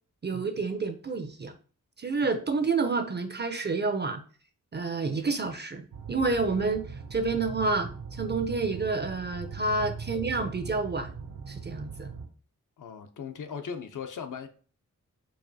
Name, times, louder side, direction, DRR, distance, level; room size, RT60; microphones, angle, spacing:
voice 1, 0.2-1.5 2.0-4.2 4.7-11.1 11.5-12.1, right 3 dB, 35° right, 7 dB, 0.5 m, -29 dB
sound 1, 5.9-12.3, right 5 dB, 75° right, 0.7 m, -40 dB
voice 2, 12.8-14.5, left 6 dB, 70° left, 7 dB, 0.6 m, -38 dB
4.7 x 2.4 x 2.7 m, 0.41 s
wide cardioid pair, 85°, 32 cm